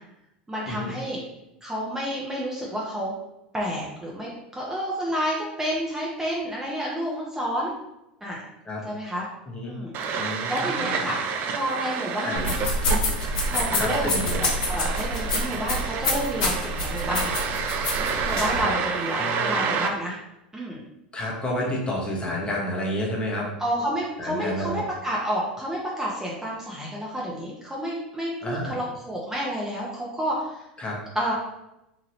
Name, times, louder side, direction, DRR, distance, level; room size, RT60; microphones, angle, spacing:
voice 1, 0.5-1.2 1.6-3.1 3.5-7.7 8.2-8.4 8.8-9.3 9.7-10.2 10.5-12.7 13.5-17.4 18.3-20.2 20.5-20.8 23.6-30.7 31.1-31.3, equal, 10° right, -5 dB, 0.7 m, -30 dB
voice 2, 9.5-9.8 10.1-11.1 12.2-12.5 13.7-14.4 18.5-18.7 19.2-19.6 21.1-23.5 24.2-24.8 28.4-28.8 30.8-31.0, left 1 dB, 20° left, -3 dB, 1.0 m, -30 dB
sound 1, 9.9-19.9, right 5 dB, 45° right, 0.4 m, -29 dB
sound 2, 12.4-18.6, left 1 dB, 65° left, 0.9 m, -27 dB
2.9 x 2.4 x 3.1 m, 0.90 s
hypercardioid pair, 90°, 5 cm